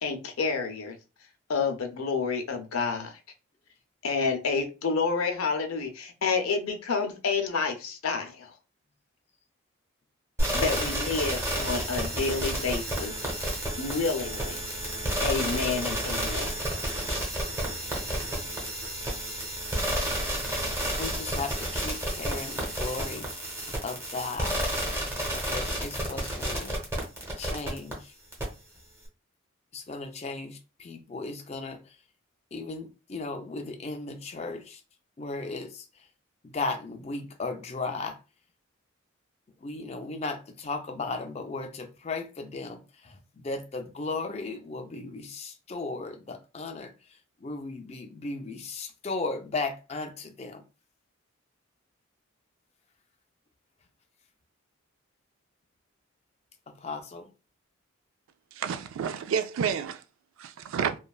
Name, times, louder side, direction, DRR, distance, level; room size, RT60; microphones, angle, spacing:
voice 1, 0.0-1.0 1.5-3.1 4.0-8.5 10.5-13.1 13.8-14.6 15.2-16.5, left 4 dB, 85° left, 0.6 m, -29 dB
sound 1, 10.4-27.9 28.3-28.4, right 1 dB, 10° right, 0.7 m, -31 dB
voice 2, 17.8-18.6 21.0-23.3 23.8-24.6 25.3-26.8 27.4-28.1 29.7-32.0 32.5-34.8 35.2-36.1 36.4-38.2 39.6-50.6 56.7-57.3, left 3 dB, 30° left, 0.4 m, -36 dB
voice 3, 58.6-60.0 60.4-61.0, right 7 dB, 75° right, 0.3 m, -30 dB
3.1 x 2.2 x 2.3 m
head